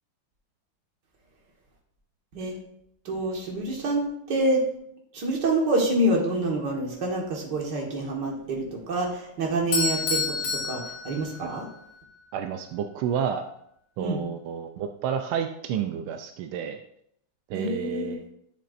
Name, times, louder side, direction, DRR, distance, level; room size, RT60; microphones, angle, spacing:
voice 1, 3.1-4.6 5.1-11.7 14.0-14.2 17.5-18.2, right 1 dB, 55° right, 0 dB, 2.1 m, -27 dB
Bell / Doorbell, 9.7-11.8, left 4 dB, 80° left, 2.0 m, -29 dB
voice 2, 12.3-13.5 14.0-16.8 17.5-18.2, right 8 dB, 85° right, 5 dB, 1.5 m, -30 dB
11.0 x 6.8 x 2.5 m, 0.72 s
omnidirectional pair, 2.3 m